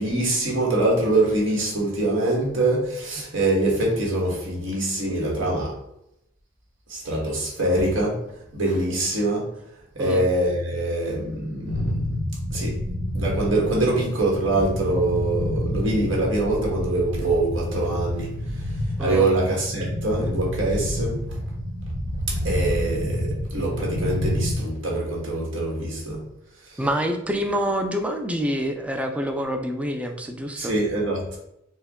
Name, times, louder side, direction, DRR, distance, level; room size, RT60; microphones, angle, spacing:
voice 1, 0.0-5.7 6.9-8.2 8.5-9.5 9.9-11.9 12.5-12.8 13.1-18.3 19.0-21.2 22.3-26.2 30.6-31.4, right 2 dB, 65° right, -3 dB, 1.5 m, -24 dB
voice 2, 10.0-10.3 19.0-19.3 26.8-30.7, equal, 5° right, 5 dB, 0.4 m, -26 dB
sound 1, 11.7-24.6, equal, 85° right, 1.2 m, -28 dB
4.6 x 2.2 x 3.6 m, 0.79 s
head